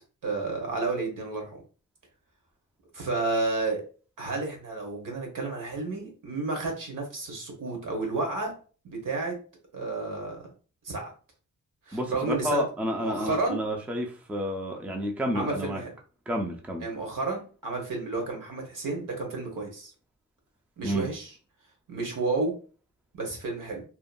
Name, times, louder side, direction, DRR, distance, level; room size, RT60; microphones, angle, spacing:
voice 1, 0.2-1.6 2.9-3.8 4.2-8.5 8.8-9.3 9.7-10.5 10.8-11.1 11.9-12.7 13.0-13.6 15.3-15.9 16.8-19.9 20.8-21.3 21.9-22.6 23.1-23.8, right 3 dB, 75° right, 1.0 m, -31 dB
voice 2, 11.9-15.8 16.3-16.8 20.8-21.1, equal, 5° right, 0.4 m, -30 dB
2.8 x 2.4 x 2.2 m
wide cardioid pair, 130°, 32 cm